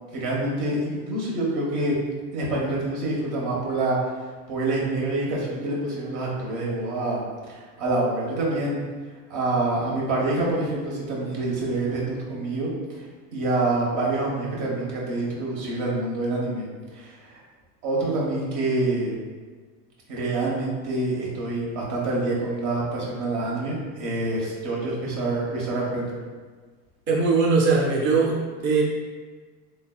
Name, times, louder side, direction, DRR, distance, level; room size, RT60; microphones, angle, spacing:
voice 1, 0.1-2.0 2.3-4.0 4.5-8.8 9.3-13.0 13.3-16.6 16.9-17.4 17.8-19.1 20.1-26.2, right 2 dB, 65° right, -4 dB, 1.2 m, -26 dB
voice 2, 27.1-28.8, right 4 dB, 25° right, -3 dB, 0.4 m, -21 dB
3.2 x 3.2 x 2.3 m, 1.4 s
supercardioid pair, 95°, 47 cm